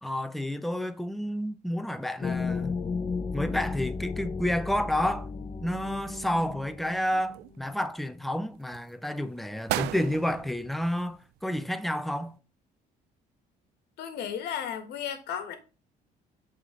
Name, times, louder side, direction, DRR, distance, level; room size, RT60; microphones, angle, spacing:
voice 1, 0.0-2.7 3.3-5.3 5.6-12.4, left 1 dB, ahead, 0.5 m, -30 dB
sound 1, 2.2-7.6, left 4 dB, 35° left, 0.8 m, -34 dB
sound 2, 5.9-6.7 7.1-8.0 8.5-8.9 9.4-9.5 9.7-11.6 11.9-12.0, right 16 dB, 85° right, 0.4 m, -36 dB
voice 2, 14.0-15.5, left 8 dB, 75° left, 1.3 m, -34 dB
7.9 x 3.7 x 3.7 m
cardioid pair, 110°, 17 cm